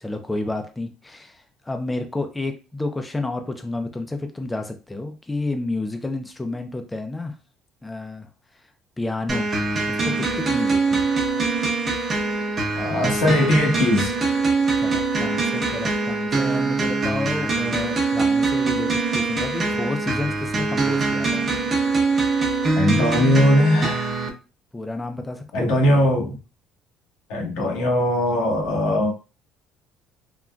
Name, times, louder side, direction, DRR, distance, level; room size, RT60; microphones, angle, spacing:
voice 1, 0.0-7.4 7.8-8.3 8.5-8.7 9.0-9.5 9.9-11.1 14.8-21.5 24.7-26.2, left 2 dB, 10° left, 0.4 m, -30 dB
sound 1, 9.3-24.3, right 3 dB, 30° right, 0.7 m, -23 dB
voice 2, 12.8-14.1 22.7-24.2 25.5-26.3 27.3-29.1, left 1 dB, 90° left, 1.0 m, -20 dB
3.7 x 2.1 x 2.2 m
cardioid pair, 120°, 0 cm